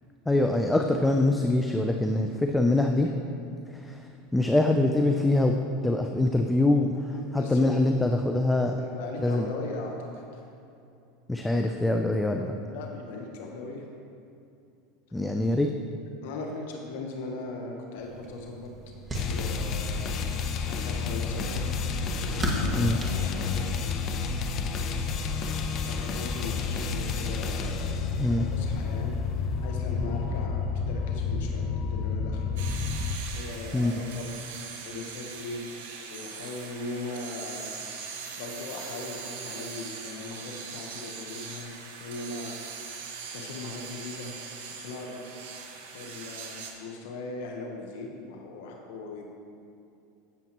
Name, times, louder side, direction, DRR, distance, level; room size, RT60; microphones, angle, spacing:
voice 1, 0.3-3.1 3.7-5.6 5.8-8.8 9.2-9.5 11.3-12.5 15.1-15.7 22.7-23.0 28.2-28.5 33.7-34.0, left 2 dB, 10° left, 4 dB, 0.5 m, -24 dB
voice 2, 7.1-7.8 8.7-10.4 12.7-13.9 16.2-18.7 19.2-20.0 20.6-21.7 22.3-23.7 25.7-32.6 33.3-34.3 34.9-35.8 36.1-37.8 38.4-42.6 43.3-44.4 44.7-45.7 45.9-49.3, left 3 dB, 75° left, 1 dB, 1.1 m, -39 dB
sound 1, 18.0-24.1, equal, 15° right, 1.8 m, -37 dB
sound 2, 19.1-33.2, left 5 dB, 45° left, 0.8 m, -30 dB
sound 3, 32.6-46.7, right 5 dB, 75° right, 1.5 m, -41 dB
16.0 x 7.1 x 3.0 m, 2.6 s
supercardioid pair, 110°, 0 cm